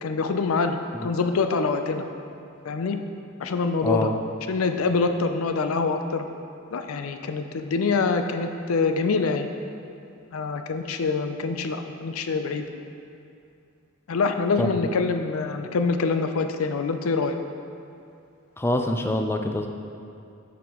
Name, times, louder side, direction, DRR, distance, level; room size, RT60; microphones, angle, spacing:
voice 1, 0.0-2.0 2.6-3.0 3.4-4.1 4.5-6.2 6.7-9.5 10.3-12.6 14.1-17.4, left 4 dB, 90° left, 7 dB, 0.5 m, -25 dB
voice 2, 3.8-4.1 14.6-14.7 18.6-19.7, left 1 dB, 10° left, 4 dB, 0.4 m, -24 dB
8.3 x 6.1 x 3.0 m, 2.5 s
head